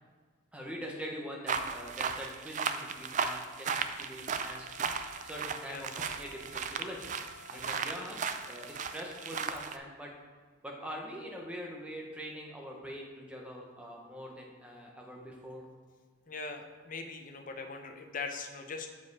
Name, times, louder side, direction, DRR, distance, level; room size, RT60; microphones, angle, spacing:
voice 1, 0.5-4.9 5.2-7.2 7.5-10.1 10.6-15.7, equal, 5° right, -1 dB, 0.9 m, -43 dB
sound 1, 1.5-9.8, right 6 dB, 35° right, 0.3 m, -36 dB
sound 2, 4.5-9.5, left 5 dB, 85° right, 1.5 m, -55 dB
voice 2, 7.5-7.9 16.3-18.9, left 4 dB, 40° left, 5 dB, 0.6 m, -41 dB
7.3 x 5.0 x 4.7 m, 1.6 s
head